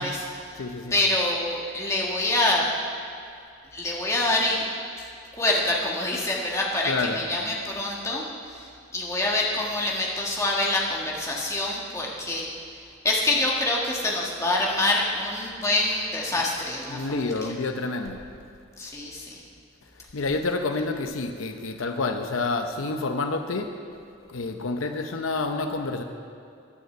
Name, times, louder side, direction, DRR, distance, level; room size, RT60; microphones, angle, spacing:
voice 1, 0.0-0.6 0.9-2.7 3.7-4.6 5.0-5.1 5.4-12.5 13.0-17.3 18.8-19.4, left 2 dB, 15° left, -3 dB, 1.6 m, -26 dB
voice 2, 0.5-1.0 6.8-7.2 16.4-16.5 16.9-18.2 19.9-23.7 24.3-26.0, left 3 dB, 80° left, 6 dB, 0.7 m, -28 dB
9.7 x 9.4 x 7.7 m, 2.4 s
head